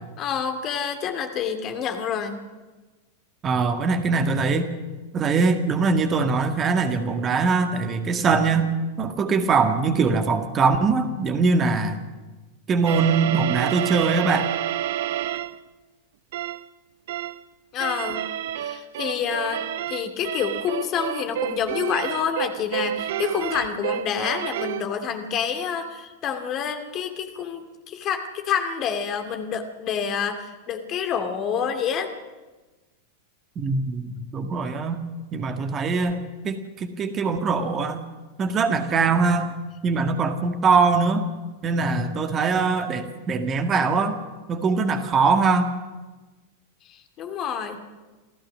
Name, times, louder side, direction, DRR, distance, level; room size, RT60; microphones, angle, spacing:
voice 1, 0.2-2.4 17.7-18.3 18.6-32.1 46.9-47.8, left 7 dB, 35° left, 7 dB, 2.4 m, -28 dB
voice 2, 3.4-4.7 5.1-8.7 9.0-12.0 12.7-14.5 33.6-35.0 35.3-38.0 38.4-39.5 39.8-41.2 41.6-44.2 44.5-45.7, right 4 dB, 25° right, 7 dB, 1.8 m, -22 dB
sound 1, 12.8-15.6 16.3-16.6 17.1-17.4 17.8-24.9, right 11 dB, 55° right, 0.7 m, -29 dB
27.5 x 15.5 x 6.3 m, 1.2 s
figure-of-eight pair, 90°, 0 cm